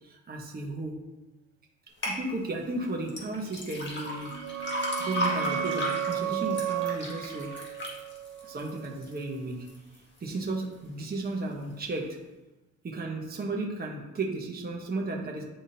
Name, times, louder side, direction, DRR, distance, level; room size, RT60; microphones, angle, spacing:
voice 1, 0.0-1.0 2.0-4.6 5.0-7.5 8.4-9.7 10.2-12.1 12.8-15.4, right 2 dB, 30° right, 0 dB, 1.1 m, -34 dB
sound 1, 2.0-2.2 3.1-9.2 9.7-10.2 10.7-10.8, left 1 dB, 40° left, 1.7 m, -34 dB
sound 2, 4.0-9.4, right 10 dB, 70° right, 0.6 m, -34 dB
10.0 x 3.6 x 2.8 m, 1.0 s
cardioid pair, 90°, 30 cm